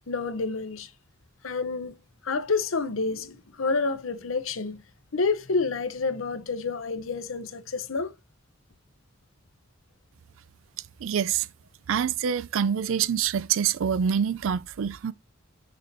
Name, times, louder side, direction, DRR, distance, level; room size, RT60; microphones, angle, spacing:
voice 1, 0.1-0.9 1.4-1.9 2.2-4.8 5.1-8.1, left 4 dB, 85° left, 0.9 m, -29 dB
voice 2, 11.0-11.5 11.9-15.1, right 8 dB, 80° right, 0.4 m, -26 dB
6.7 x 6.4 x 2.7 m
head